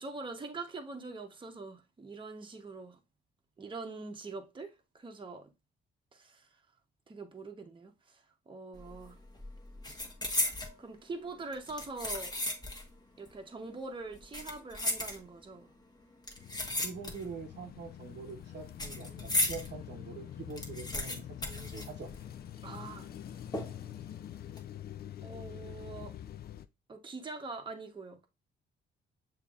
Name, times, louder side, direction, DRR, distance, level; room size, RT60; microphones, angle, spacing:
voice 1, 0.0-3.0 3.6-5.5 6.1-6.5 7.1-8.2 8.5-9.2 10.8-12.3 13.2-15.7 22.6-23.1 25.2-26.1 26.9-28.3, right 3 dB, 25° right, 0.9 m, -43 dB
sound 1, 8.8-9.1 9.4-10.8 11.5-12.9 13.2-13.3 14.1-15.6 16.2-17.4 17.7-19.7 20.1-20.2 20.4-22.5 22.7-22.8 23.5-24.0 24.4-24.6, left 1 dB, 20° left, 1.2 m, -35 dB
sound 2, 16.4-26.7, left 11 dB, 50° left, 0.4 m, -45 dB
voice 2, 16.8-22.1, right 5 dB, 60° right, 0.8 m, -45 dB
6.7 x 2.9 x 2.4 m
cardioid pair, 90°, 20 cm